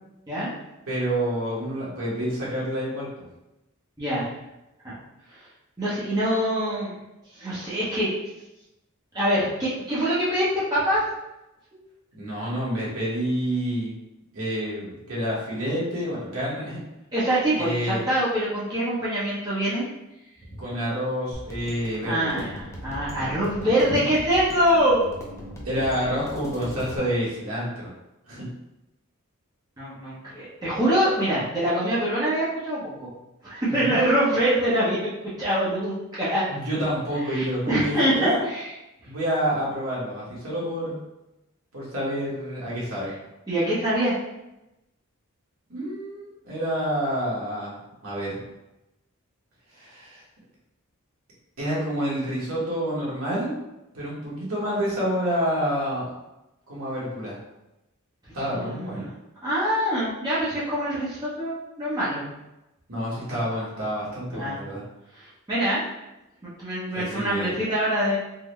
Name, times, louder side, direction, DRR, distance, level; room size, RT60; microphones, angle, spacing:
voice 1, 0.9-3.3 12.1-13.9 14.3-16.8 17.6-18.0 20.6-22.5 25.6-27.9 28.3-28.5 33.7-34.0 36.5-38.4 39.0-41.0 41.7-43.1 45.7-47.7 48.0-48.4 49.7-50.2 51.6-53.6 53.9-56.0 56.7-57.4 58.3-59.1 62.9-64.8 66.9-67.5, equal, 70° right, -7 dB, 1.3 m, -28 dB
voice 2, 4.0-4.3 4.8-4.9 5.3-5.4 5.8-6.9 7.3-8.1 9.1-11.0 17.1-19.9 22.1-25.0 29.8-33.1 33.4-35.1 35.4-36.4 37.3-38.3 38.5-38.6 43.5-44.2 58.5-59.0 59.4-62.3 64.3-64.6 65.2-65.8 66.6-68.2, equal, 20° right, -10 dB, 0.7 m, -24 dB
sound 1, 21.3-27.0, equal, 15° left, 0.4 m, -39 dB
3.7 x 2.1 x 3.1 m, 0.93 s
head